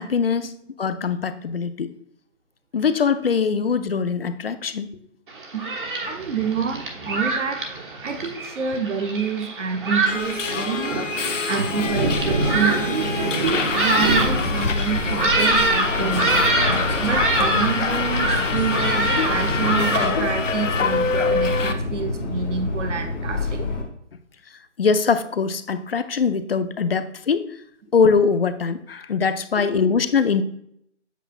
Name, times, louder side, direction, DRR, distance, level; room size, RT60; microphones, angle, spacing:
voice 1, 0.0-1.9 2.7-4.9 24.8-27.6 27.9-30.4, left 5 dB, 50° left, 12 dB, 0.5 m, -22 dB
Thunderstorm, 5.3-20.1, right 2 dB, 45° right, 1.1 m, -25 dB
voice 2, 6.0-7.6 8.0-11.1 11.4-23.7 29.6-29.8, right 6 dB, 75° right, 5 dB, 0.9 m, -28 dB
Subway metro underground, 10.1-21.7, left 4 dB, 85° left, 0.9 m, -25 dB
Subway metro underground 2, 15.8-23.8, left 2 dB, 35° left, 1.2 m, -27 dB
8.1 x 5.6 x 2.3 m, 0.71 s
figure-of-eight pair, 165°, 37 cm